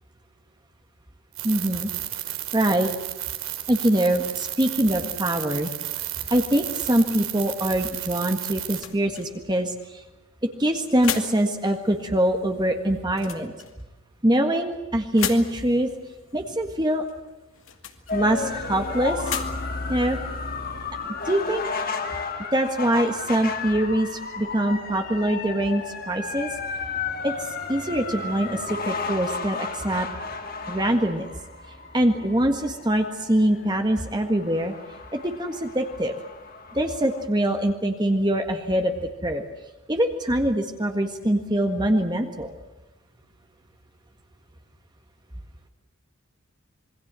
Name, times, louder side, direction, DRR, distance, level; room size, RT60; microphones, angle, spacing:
voice 1, 1.4-1.9 2.5-2.9 3.7-5.7 6.3-10.0 10.6-13.5 14.2-15.9 16.3-17.0 18.1-19.4 19.9-20.2 21.2-21.6 22.5-26.5 27.2-30.1 30.7-31.3 31.9-34.7 35.1-36.1 36.7-38.9 39.2-39.4 39.9-42.5, right 1 dB, 20° right, 4 dB, 1.7 m, -23 dB
sound 1, 1.4-8.8, right 13 dB, 80° right, 3.8 m, -33 dB
sound 2, 8.5-21.3, left 9 dB, 70° left, 2.3 m, -39 dB
sound 3, 18.1-37.2, left 4 dB, 45° left, 2.3 m, -33 dB
27.0 x 22.0 x 7.6 m, 1.0 s
head